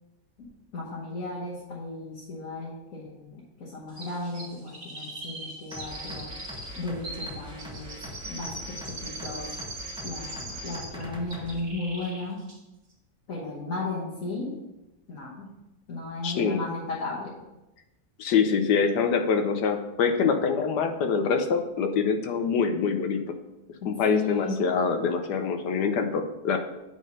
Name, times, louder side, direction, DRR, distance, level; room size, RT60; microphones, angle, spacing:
voice 1, 0.7-6.3 6.7-9.5 10.0-12.4 13.3-14.5 15.1-15.5 15.9-17.3 23.8-24.7, left 3 dB, 50° left, -5 dB, 1.7 m, -35 dB
Chirp tweet, 4.0-11.0 11.3-12.2 12.5-12.6, right 1 dB, 40° right, 2.6 m, -40 dB
sound 1, 5.7-11.5, equal, 5° right, 0.7 m, -42 dB
voice 2, 16.2-16.6 18.2-23.2 23.8-26.6, left 5 dB, 75° left, 7 dB, 1.3 m, -25 dB
8.5 x 3.7 x 5.3 m, 0.98 s
omnidirectional pair, 1.8 m